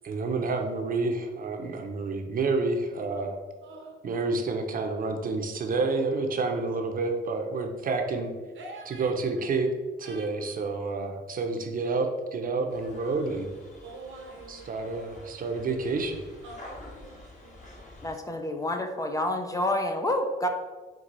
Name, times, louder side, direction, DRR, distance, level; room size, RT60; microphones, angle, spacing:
voice 1, 0.0-3.3 4.0-8.3 8.8-9.7 10.0-13.5 14.5-16.2, right 3 dB, 45° right, 4 dB, 0.7 m, -29 dB
voice 2, 3.6-4.0 8.6-9.1 10.0-10.2 13.8-14.7 16.4-17.8, right 2 dB, 75° right, 2 dB, 0.9 m, -45 dB
sound 1, 12.7-18.1, left 1 dB, 40° left, 1.3 m, -48 dB
voice 3, 18.0-20.5, left 1 dB, 15° left, 4 dB, 0.4 m, -28 dB
4.6 x 2.3 x 3.9 m, 1.3 s
cardioid pair, 90°, 20 cm